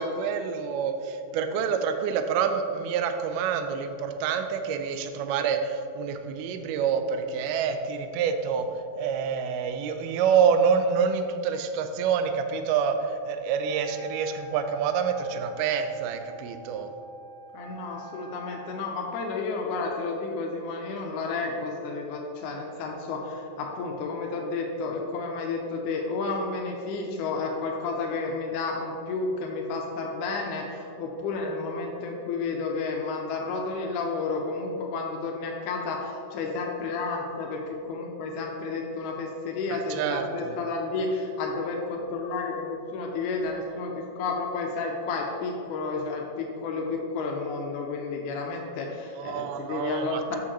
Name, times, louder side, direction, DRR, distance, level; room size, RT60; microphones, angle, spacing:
voice 1, 0.0-8.7 9.0-13.0 13.3-16.9 39.7-40.6 49.1-50.4, right 6 dB, 85° right, 7 dB, 1.9 m, -27 dB
Wind instrument woodwind instrument, 13.6-18.9, equal, 60° right, 1.4 m, -46 dB
voice 2, 17.5-50.4, left 3 dB, 85° left, 1 dB, 1.8 m, -31 dB
8.6 x 5.9 x 3.1 m, 2.6 s
omnidirectional pair, 4.2 m